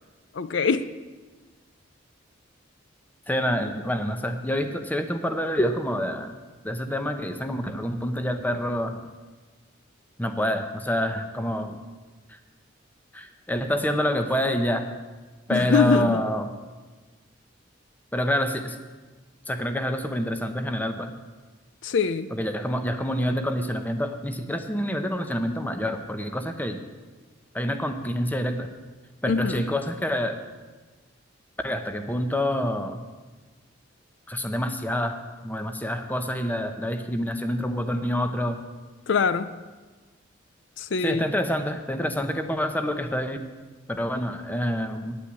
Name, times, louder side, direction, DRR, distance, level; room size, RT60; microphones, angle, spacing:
voice 1, 0.3-0.9 15.5-16.2 21.8-22.3 29.2-29.7 39.1-39.5 40.8-41.3, left 5 dB, 65° left, 13 dB, 0.5 m, -23 dB
voice 2, 3.3-6.3 6.6-9.0 10.2-11.8 13.1-14.9 15.5-16.5 18.1-18.8 19.5-21.1 22.4-26.8 27.5-28.7 29.2-30.4 31.6-33.0 34.3-38.6 41.0-43.4 43.9-45.2, equal, 10° left, 6 dB, 0.8 m, -27 dB
9.7 x 9.1 x 8.4 m, 1.3 s
head